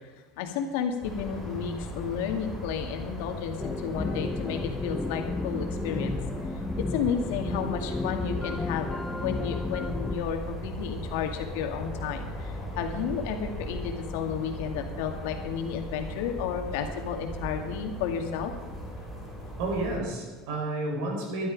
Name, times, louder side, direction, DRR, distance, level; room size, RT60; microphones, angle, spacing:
voice 1, 0.0-6.2 6.8-18.5, left 7 dB, 80° left, 5 dB, 1.9 m, -32 dB
sound 1, 1.0-20.0, equal, 10° right, 3.5 m, -38 dB
sound 2, 3.6-10.2, left 3 dB, 10° left, 0.5 m, -33 dB
voice 2, 19.6-21.5, right 2 dB, 70° right, 0 dB, 5.0 m, -31 dB
13.0 x 12.0 x 5.2 m, 1.2 s
cardioid pair, 155°, 0 cm